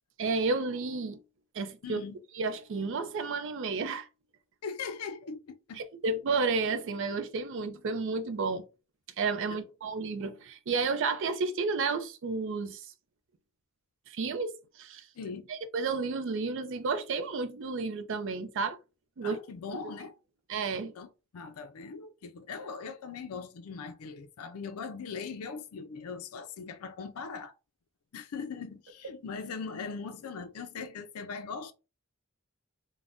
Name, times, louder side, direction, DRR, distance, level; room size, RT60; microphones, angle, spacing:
voice 1, 0.2-1.2 1.5-2.0 2.3-4.1 5.8-8.6 9.2-12.8 14.1-15.0 15.5-18.8 19.2-19.4 19.7-19.8 20.5-20.9, right 4 dB, 55° right, 0.4 m, -31 dB
voice 2, 1.8-2.2 4.6-5.8 9.5-9.6 15.2-15.5 19.2-20.1 21.0-27.5 28.1-31.7, left 5 dB, 75° left, 0.4 m, -40 dB
2.5 x 2.1 x 3.4 m
head